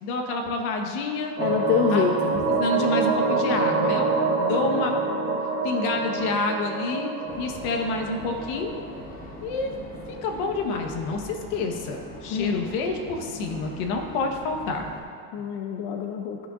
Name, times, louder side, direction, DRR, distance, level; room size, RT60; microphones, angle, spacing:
voice 1, 0.0-1.4 1.9-2.0 2.5-4.1 4.4-5.0 5.6-8.7 9.4-9.7 10.1-14.9, left 3 dB, 75° left, 3 dB, 1.3 m, -28 dB
voice 2, 1.4-2.4 12.3-12.6 15.3-16.4, left 7 dB, 55° left, 3 dB, 0.6 m, -26 dB
sound 1, 1.4-8.9, right 3 dB, 30° right, 1.4 m, -26 dB
sound 2, 7.3-15.0, left 1 dB, 20° left, 0.9 m, -41 dB
13.5 x 6.3 x 2.5 m, 2.3 s
cardioid pair, 150°, 45 cm